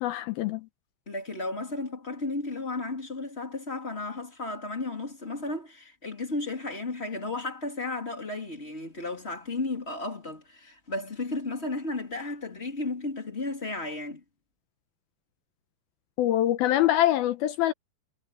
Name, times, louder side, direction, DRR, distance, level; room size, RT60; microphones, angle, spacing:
voice 1, 0.0-0.7 16.2-17.7, left 13 dB, 80° left, 2.3 m, -24 dB
voice 2, 1.1-14.2, left 2 dB, 15° left, 2.8 m, -34 dB
omnidirectional pair, 5.1 m